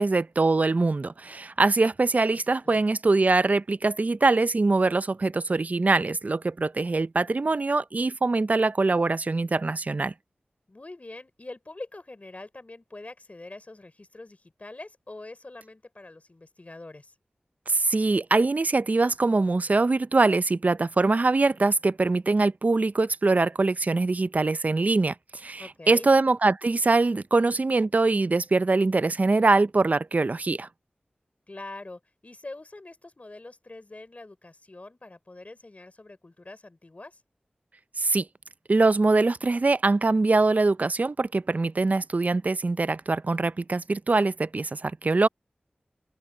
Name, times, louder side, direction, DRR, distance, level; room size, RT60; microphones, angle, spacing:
voice 1, 0.0-10.1 17.7-30.7 38.0-38.3 38.7-45.3, right 3 dB, 50° right, 0.5 m, -23 dB
voice 2, 2.3-2.8 10.7-17.1 25.6-26.1 31.5-37.2, left 2 dB, 45° left, 5.0 m, -44 dB
cardioid pair, 45°, 3 cm